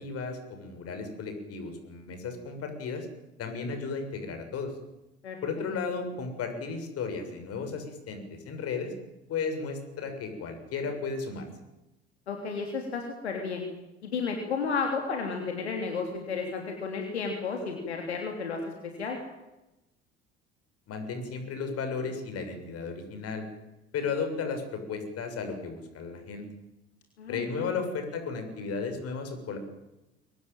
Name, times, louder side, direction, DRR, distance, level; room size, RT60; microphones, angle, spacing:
voice 1, 0.0-3.1 3.4-4.7 5.4-8.9 9.3-11.5 20.9-23.4 23.9-26.5 27.3-29.6, left 5 dB, 45° left, 6 dB, 7.0 m, -34 dB
voice 2, 12.3-13.6 14.0-18.6 19.0-19.2 27.2-27.7, left 5 dB, 75° left, 3 dB, 3.4 m, -32 dB
23.5 x 19.5 x 9.2 m, 0.97 s
figure-of-eight pair, 60°, 32 cm